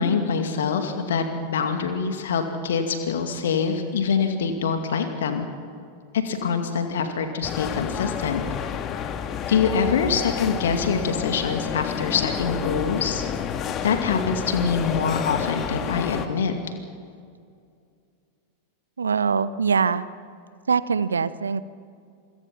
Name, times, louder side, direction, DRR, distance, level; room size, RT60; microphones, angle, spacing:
voice 1, 0.0-5.5 6.2-8.4 9.5-13.2 13.8-16.7, left 6 dB, 60° left, 6 dB, 2.3 m, -25 dB
sound 1, 7.4-16.3, left 8 dB, 30° left, 1.8 m, -30 dB
voice 2, 19.0-20.1 20.7-21.6, right 5 dB, 70° right, 17 dB, 0.8 m, -23 dB
27.5 x 23.5 x 5.8 m, 2.3 s
figure-of-eight pair, 90°, 0 cm